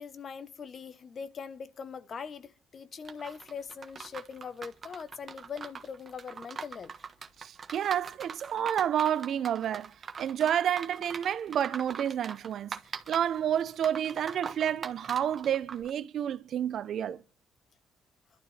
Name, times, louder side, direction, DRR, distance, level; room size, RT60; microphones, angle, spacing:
voice 1, 0.0-6.9, left 6 dB, 50° left, 1.0 m, -42 dB
sound 1, 3.0-15.9, right 5 dB, 40° right, 1.3 m, -43 dB
voice 2, 7.4-12.8 13.1-17.2, right 9 dB, 65° right, 0.7 m, -30 dB
26.0 x 12.0 x 3.3 m
cardioid pair, 90°, 0 cm